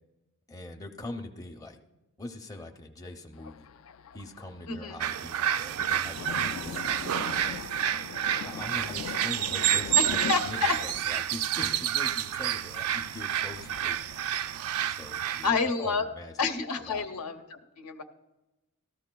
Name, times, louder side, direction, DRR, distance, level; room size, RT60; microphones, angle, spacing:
voice 1, 0.5-1.8 2.2-3.7 4.1-7.7 8.3-14.0 14.9-16.3 16.9-17.0, left 2 dB, 15° left, 3 dB, 0.6 m, -43 dB
Thunder, 3.3-14.6, left 7 dB, 65° left, 0.3 m, -42 dB
voice 2, 4.7-5.0 10.0-10.7 15.4-16.1 16.4-18.0, left 4 dB, 85° left, 5 dB, 0.8 m, -29 dB
sound 1, 5.0-15.5, right 11 dB, 70° right, 0.3 m, -29 dB
18.0 x 13.5 x 2.3 m, 1.1 s
head